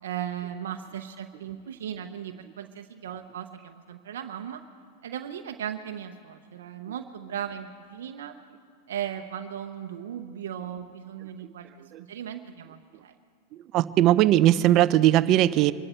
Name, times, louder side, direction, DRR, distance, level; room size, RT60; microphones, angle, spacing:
voice 1, 0.0-4.6 5.0-8.3 8.9-11.7 12.1-13.1, right 9 dB, 80° right, 6 dB, 0.8 m, -37 dB
voice 2, 13.5-15.7, right 13 dB, 45° right, 16 dB, 0.5 m, -20 dB
25.0 x 12.5 x 4.5 m, 2.4 s
hypercardioid pair, 120°, 0 cm